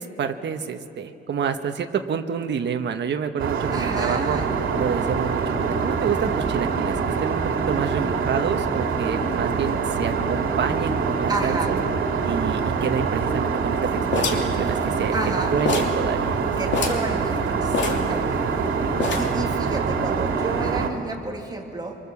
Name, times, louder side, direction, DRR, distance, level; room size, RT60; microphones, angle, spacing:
voice 1, 0.0-4.4 4.8-7.4 7.7-11.8 12.2-15.1 15.5-16.3, right 7 dB, 60° right, 6 dB, 1.3 m, -28 dB
Aircraft, 3.4-20.9, right 5 dB, 85° right, 2.5 m, -25 dB
voice 2, 3.7-4.5 11.3-11.7 15.1-15.5 16.6-18.4 19.2-22.0, right 2 dB, 20° right, 1 dB, 2.5 m, -31 dB
sound 1, 14.1-15.3 15.7-16.0 16.3-16.4 16.7-17.1 17.7-18.6 19.0-19.5, left 4 dB, 65° left, 2.8 m, -26 dB
26.0 x 24.5 x 7.2 m, 2.5 s
cardioid pair, 135°, 20 cm